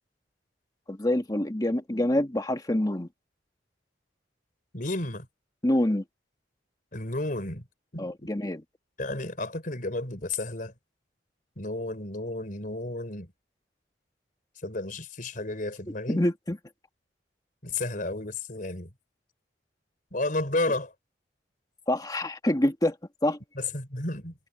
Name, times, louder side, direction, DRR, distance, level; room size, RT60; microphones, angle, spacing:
voice 1, 0.9-3.1 5.6-6.0 8.0-8.6 16.1-16.6 21.9-23.0 23.2-23.4, left 1 dB, 20° left, 1.6 m, -26 dB
voice 2, 4.7-5.3 6.9-7.6 7.9-8.3 9.0-10.7 11.6-13.3 14.6-16.2 17.6-18.9 20.1-20.9 23.6-24.3, left 2 dB, 50° left, 4.2 m, -32 dB
head